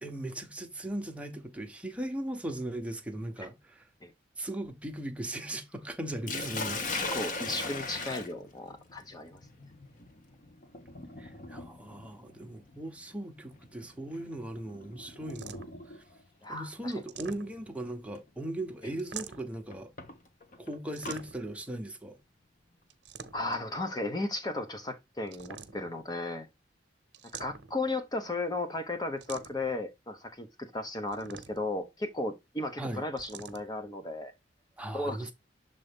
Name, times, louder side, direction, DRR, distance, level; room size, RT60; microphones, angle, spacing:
voice 1, 0.0-3.8 4.4-6.8 11.2-16.0 16.5-19.9 20.6-22.2 32.8-33.0 34.8-35.3, right 1 dB, 5° right, 1.0 m, -38 dB
Sink (filling or washing), 6.3-16.2 17.3-17.6 18.1-18.2 19.7-21.2, left 3 dB, 50° left, 1.1 m, -40 dB
voice 2, 7.0-9.4 16.4-16.9 18.8-18.9 23.3-26.5 27.4-34.3 34.9-35.3, left 2 dB, 20° left, 0.8 m, -35 dB
sound 1, 15.3-15.9 16.9-17.8 19.0-19.6 21.0-21.6 22.9-23.7 25.3-26.0 27.1-27.9 29.2-29.8 31.1-31.8 33.2-33.7, right 7 dB, 75° right, 0.8 m, -46 dB
6.8 x 3.9 x 3.5 m
head